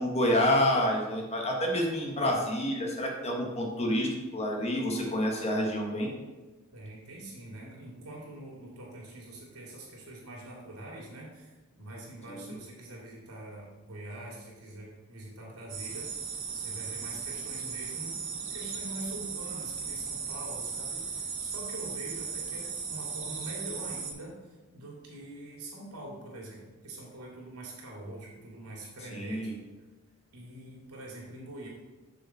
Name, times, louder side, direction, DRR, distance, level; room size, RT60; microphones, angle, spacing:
voice 1, 0.0-6.1 12.3-12.5 29.1-29.5, left 1 dB, 30° left, 0 dB, 1.3 m, -28 dB
voice 2, 6.7-16.2 16.5-18.1 18.5-29.5 30.3-31.7, right 1 dB, 85° right, -3 dB, 2.7 m, -44 dB
sound 1, 15.7-24.1, right 5 dB, 55° right, 1.3 m, -37 dB
7.0 x 6.8 x 4.1 m, 1.2 s
head